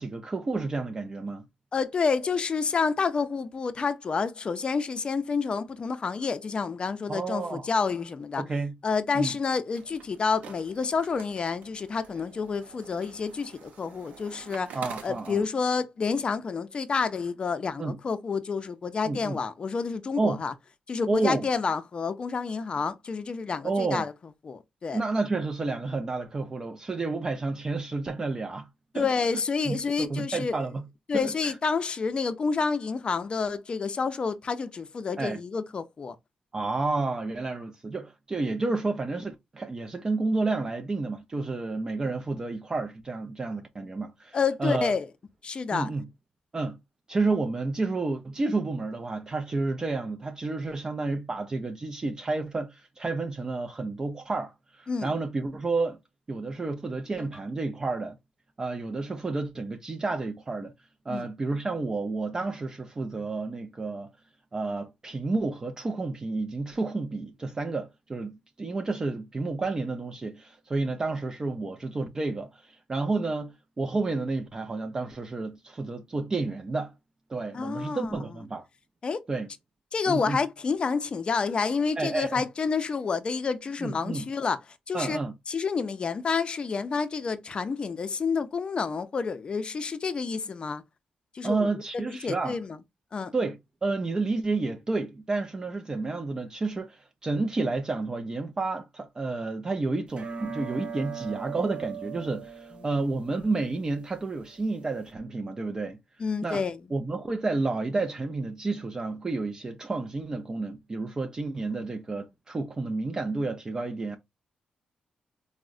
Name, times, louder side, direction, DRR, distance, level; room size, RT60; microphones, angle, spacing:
voice 1, 0.0-1.4 7.1-7.7 8.4-8.7 9.1-9.3 14.7-15.4 17.8-18.0 19.1-19.4 20.2-20.4 21.1-21.5 23.6-24.1 24.9-28.7 28.9-29.1 29.7-30.8 31.2-31.5 35.2-35.4 36.5-44.9 45.7-46.1 46.5-46.8 47.1-56.0 56.3-58.2 58.6-60.7 61.1-64.1 64.5-76.9 77.3-78.7 79.3-79.5 80.1-80.4 82.0-82.4 83.8-84.2 84.9-85.3 91.4-92.6 93.3-106.0 106.4-106.7 106.9-114.2, right 3 dB, 30° right, 0.4 m, -30 dB
voice 2, 1.7-8.4 8.8-14.7 15.0-20.5 20.9-24.1 24.5-25.0 28.9-30.6 31.1-36.1 44.3-45.1 45.4-45.9 54.9-55.1 61.1-61.3 77.5-78.1 79.0-79.2 79.9-84.6 84.9-85.2 85.5-90.8 91.3-91.7 92.1-92.8 93.1-93.3 106.2-106.8, left 5 dB, 40° left, 0.4 m, -29 dB
sound 1, 9.7-15.4, right 6 dB, 85° right, 0.6 m, -47 dB
sound 2, 100.1-105.1, right 6 dB, 50° right, 0.7 m, -40 dB
3.5 x 2.1 x 2.3 m
cardioid pair, 100°, 3 cm